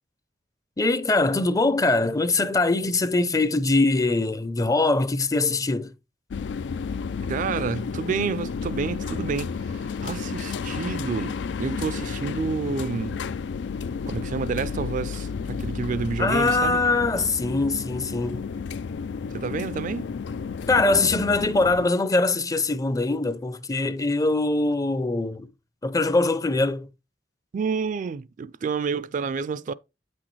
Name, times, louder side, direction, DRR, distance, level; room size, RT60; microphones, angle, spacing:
voice 1, 0.8-5.9 16.2-18.4 20.7-25.5 25.8-26.9, left 2 dB, 20° left, 0.5 m, -22 dB
sound 1, 6.3-21.9, left 5 dB, 75° left, 0.4 m, -32 dB
voice 2, 7.3-13.2 14.1-16.8 19.3-20.1 27.5-29.7, right 5 dB, 45° right, 0.3 m, -29 dB
8.6 x 6.1 x 3.1 m
head